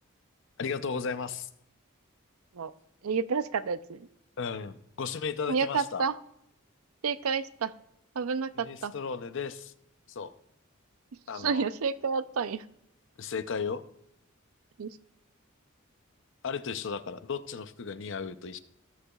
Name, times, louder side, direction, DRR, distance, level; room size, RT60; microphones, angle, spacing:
voice 1, 0.6-1.5 4.4-6.0 8.6-9.7 10.1-10.3 11.3-11.6 13.2-13.8 16.4-18.6, left 5 dB, 60° left, 12 dB, 0.6 m, -35 dB
voice 2, 3.0-4.1 5.5-6.1 7.0-7.7 8.2-8.9 11.3-12.6 14.8-15.0, right 5 dB, 80° right, 14 dB, 0.5 m, -30 dB
18.5 x 6.7 x 2.3 m, 0.81 s
head